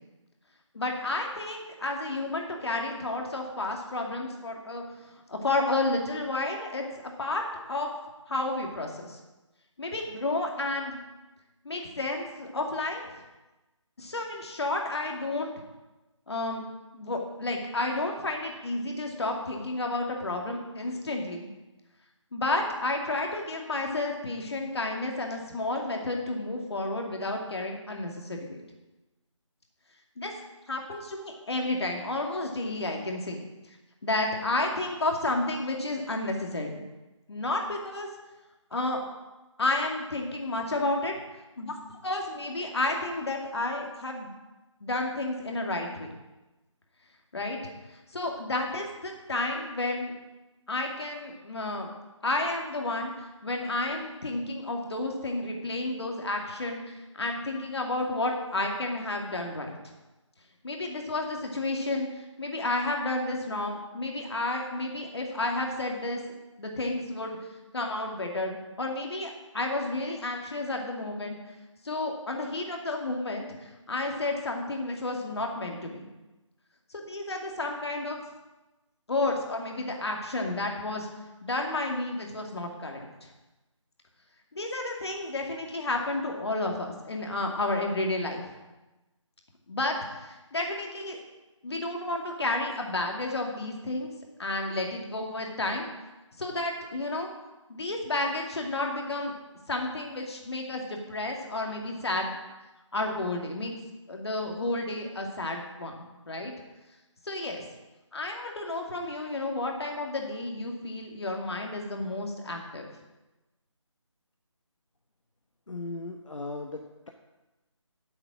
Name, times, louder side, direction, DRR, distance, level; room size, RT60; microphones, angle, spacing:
voice 1, 0.7-4.8 5.3-7.4 7.7-7.9 8.3-9.2 9.8-11.0 11.6-13.1 14.0-15.5 16.3-16.6 16.9-21.5 22.3-28.6 30.2-30.3 30.7-33.4 34.0-36.8 37.3-38.1 38.7-39.0 39.6-41.1 41.6-41.8 42.0-44.3 44.8-46.1 47.3-47.6 48.1-50.1 50.7-51.9 52.2-53.1 53.4-59.8 60.6-66.2 66.6-67.3 67.7-71.4 71.8-76.1 76.9-78.2 79.1-81.1 81.4-83.0 84.5-88.4 89.7-89.9 90.2-91.2 91.6-94.1 94.4-95.9 96.4-97.3 97.7-99.3 99.7-102.3 102.9-103.7 104.1-106.5 107.2-107.6 108.1-112.9, left 2 dB, 55° left, 2 dB, 2.4 m, -31 dB
voice 2, 115.7-117.1, left 3 dB, 75° left, 3 dB, 1.2 m, -37 dB
9.1 x 8.0 x 7.6 m, 1.1 s
figure-of-eight pair, 160°, 16 cm